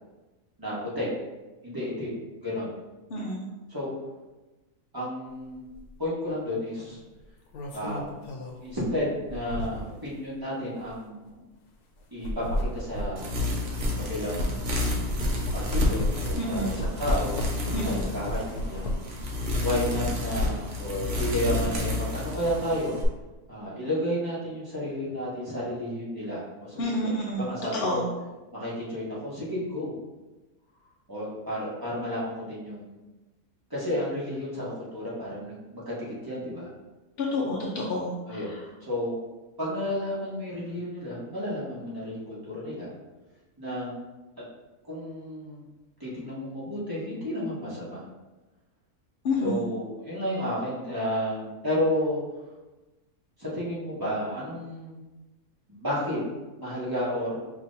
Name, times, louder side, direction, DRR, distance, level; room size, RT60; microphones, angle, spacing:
voice 1, 0.6-1.1 1.6-2.7 3.7-3.9 4.9-5.7 6.0-7.0 7.7-8.1 8.6-11.3 12.1-13.3 14.0-14.7 15.5-17.4 17.7-18.9 19.6-22.9 23.5-27.1 27.3-28.0 28.5-29.9 31.1-32.9 33.7-36.7 38.3-38.5 38.8-39.2 39.6-42.9 43.6-43.9 44.9-45.6 46.0-48.0 49.4-52.2 53.4-55.0 55.7-56.2 56.6-57.4, equal, 15° right, -9 dB, 1.2 m, -32 dB
voice 2, 3.1-3.4 16.4-16.8 17.7-17.8 26.8-27.5 27.8-28.0 37.2-38.4 49.2-49.7, left 1 dB, 55° left, -3 dB, 0.6 m, -29 dB
sound 1, 5.7-5.9 7.2-10.1 10.8-10.9 12.0-14.6 14.9-19.2 19.6-20.5, equal, 90° left, 1.2 m, -33 dB
sound 2, 13.2-23.0, left 2 dB, 55° right, 0.8 m, -30 dB
5.6 x 3.0 x 2.6 m, 1.1 s
omnidirectional pair, 1.6 m